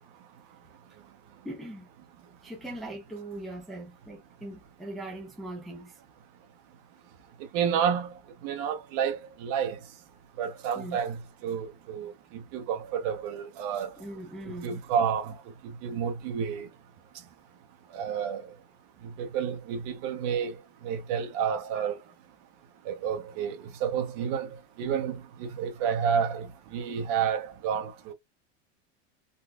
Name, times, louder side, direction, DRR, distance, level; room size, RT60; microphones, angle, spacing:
voice 1, 1.4-1.9 2.4-6.0 10.7-11.0 14.0-14.8, right 1 dB, ahead, 0.5 m, -40 dB
voice 2, 7.5-8.1 8.4-9.8 10.4-13.9 14.6-15.3 15.6-16.7 17.9-18.5 19.2-20.6 20.8-22.0 22.9-24.5 24.8-26.5 26.7-28.1, right 7 dB, 45° right, 1.0 m, -30 dB
4.0 x 2.3 x 2.3 m
supercardioid pair, 150°, 37 cm